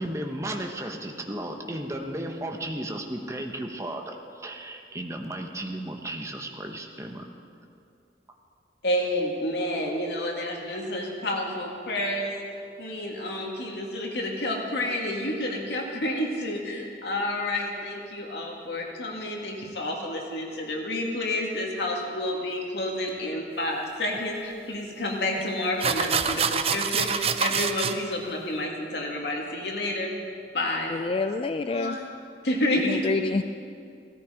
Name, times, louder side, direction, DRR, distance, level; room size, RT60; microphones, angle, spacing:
voice 1, 0.0-7.2, right 1 dB, 15° right, 3 dB, 1.0 m, -34 dB
voice 2, 8.8-12.4 12.8-30.1 30.5-30.9 31.7-32.0 32.4-33.1, left 1 dB, 75° left, 0 dB, 2.2 m, -29 dB
sound 1, 24.1-24.2 25.3-25.4 25.8-27.9, right 6 dB, 35° right, 0.5 m, -26 dB
voice 3, 30.9-32.0 32.8-33.4, left 3 dB, 30° left, 9 dB, 0.3 m, -27 dB
16.5 x 13.0 x 5.1 m, 2.5 s
head